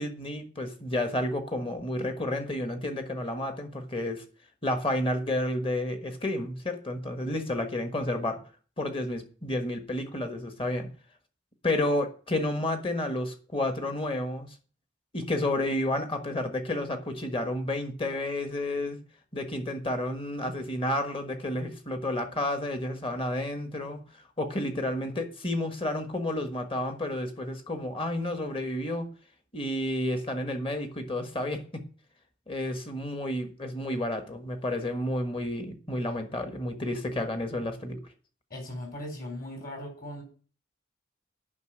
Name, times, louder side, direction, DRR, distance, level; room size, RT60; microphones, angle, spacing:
voice 1, 0.0-4.2 4.6-8.4 8.8-10.9 11.6-14.5 15.1-19.0 19.3-29.1 29.5-31.8 32.5-38.0, left 1 dB, 30° left, 1.4 m, -31 dB
voice 2, 38.5-40.2, left 1 dB, 45° left, 4.4 m, -38 dB
9.5 x 5.9 x 7.8 m
head